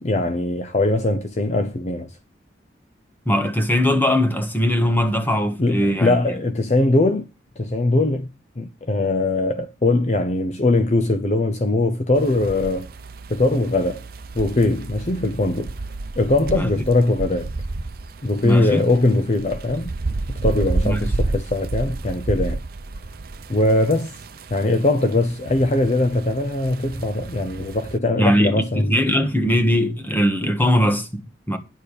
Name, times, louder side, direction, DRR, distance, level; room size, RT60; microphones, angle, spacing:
voice 1, 0.0-2.1 5.6-7.2 7.6-8.3 8.6-12.9 13.3-14.1 14.3-15.7 16.2-17.5 18.2-19.9 20.3-22.6 23.5-24.2 24.5-29.0, left 2 dB, 40° left, 0.7 m, -21 dB
voice 2, 3.2-6.1 16.5-16.7 18.4-18.8 20.8-21.1 28.2-31.6, equal, 10° left, 1.5 m, -20 dB
sound 1, 12.2-28.0, right 2 dB, 55° right, 0.8 m, -31 dB
10.5 x 6.9 x 5.2 m
head